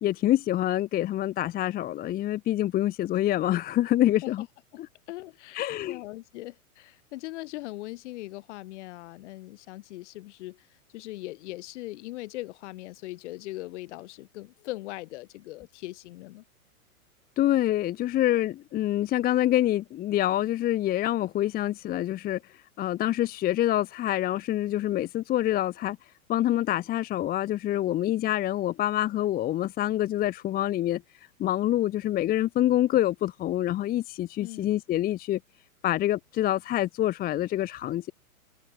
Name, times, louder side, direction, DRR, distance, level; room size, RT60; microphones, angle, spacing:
voice 1, 0.0-4.4 5.5-6.0 17.4-22.4 22.8-26.0 26.3-31.0 31.4-35.4 35.8-38.1, left 13 dB, 20° left, 0.9 m, -26 dB
voice 2, 5.1-16.4 34.4-34.7, left 18 dB, 50° left, 3.9 m, -40 dB
hypercardioid pair, 115°, 44 cm